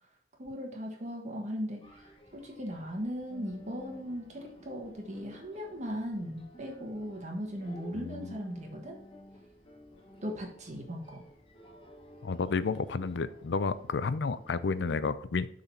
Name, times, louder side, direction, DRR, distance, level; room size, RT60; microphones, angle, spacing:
voice 1, 0.4-9.0 10.2-11.2, equal, 40° right, 1 dB, 1.4 m, -38 dB
sound 1, 1.8-15.0, equal, 30° left, 1.4 m, -53 dB
voice 2, 7.9-8.4 12.2-15.5, left 4 dB, 90° left, 15 dB, 0.5 m, -31 dB
7.1 x 4.0 x 5.5 m, 0.67 s
head